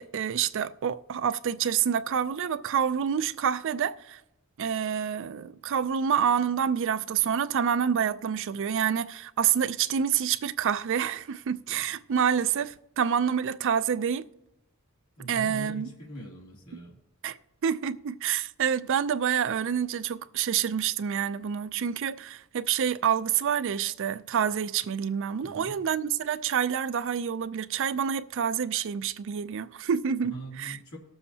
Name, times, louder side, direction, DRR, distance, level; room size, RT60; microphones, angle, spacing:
voice 1, 0.0-4.2 4.6-14.3 15.3-15.9 16.7-16.8 17.2-17.4 17.6-30.8, right 8 dB, 60° right, 0.4 m, -27 dB
voice 2, 15.2-16.9 25.4-25.8 30.2-31.0, right 1 dB, 75° left, 2.7 m, -42 dB
19.0 x 7.1 x 2.8 m
head